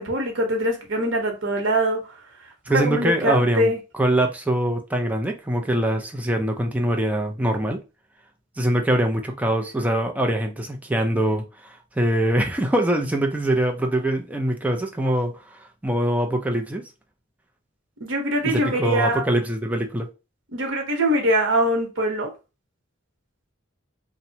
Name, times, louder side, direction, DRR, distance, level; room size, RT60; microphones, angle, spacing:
voice 1, 0.0-2.0 2.7-3.8 18.0-19.2 20.5-22.3, right 1 dB, 90° right, 0.8 m, -23 dB
voice 2, 2.7-7.8 8.6-16.9 18.4-20.1, right 1 dB, 10° right, 0.4 m, -23 dB
2.8 x 2.0 x 2.7 m
head